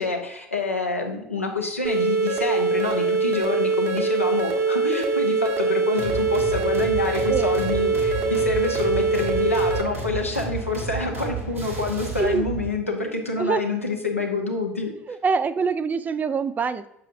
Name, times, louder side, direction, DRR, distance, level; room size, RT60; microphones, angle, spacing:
voice 1, 0.0-14.9, left 3 dB, 90° left, 1 dB, 0.9 m, -27 dB
sound 1, 1.8-9.8, right 3 dB, 50° right, 1.2 m, -23 dB
sound 2, 5.9-12.6, right 5 dB, 80° right, 1.6 m, -32 dB
voice 2, 13.4-13.7 15.1-16.9, right 5 dB, 25° right, 13 dB, 0.4 m, -24 dB
7.0 x 6.3 x 2.6 m, 0.89 s
figure-of-eight pair, 65°, 7 cm